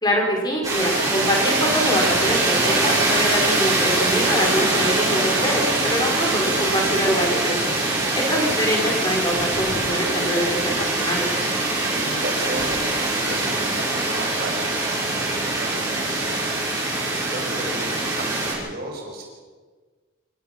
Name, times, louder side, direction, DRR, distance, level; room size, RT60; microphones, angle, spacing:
voice 1, 0.0-7.6 8.1-11.3, equal, 20° left, 0 dB, 4.8 m, -24 dB
sound 1, 0.6-18.5, right 2 dB, 20° right, 6.5 m, -23 dB
voice 2, 7.7-8.1 11.5-16.4 17.1-19.2, right 1 dB, 50° right, 0 dB, 5.7 m, -35 dB
27.5 x 16.0 x 6.0 m, 1.4 s
head